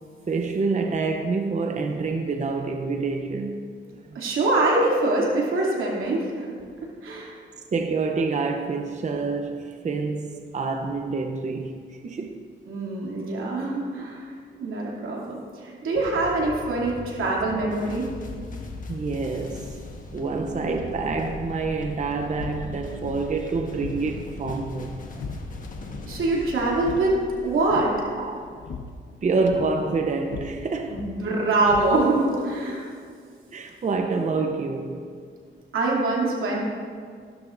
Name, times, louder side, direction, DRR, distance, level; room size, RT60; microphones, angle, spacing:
voice 1, 0.3-3.6 3.9-4.2 5.3-5.7 6.0-6.1 7.7-12.4 16.6-17.0 18.9-19.8 20.1-25.2 27.4-27.6 28.1-28.6 29.2-31.0 32.0-32.4 32.7-32.8 33.5-35.0 36.3-36.6, right 4 dB, 35° right, 0.7 m, -28 dB
voice 2, 4.1-6.5 7.0-7.4 12.7-14.2 14.6-18.1 26.1-27.9 30.9-32.8 35.7-36.6, right 2 dB, 90° right, 2.6 m, -24 dB
sound 1, 15.9-28.1, left 2 dB, 40° left, 1.3 m, -39 dB
sound 2, 21.8-32.4, left 4 dB, 65° left, 0.9 m, -41 dB
15.0 x 12.5 x 2.6 m
cardioid pair, 95°, 20 cm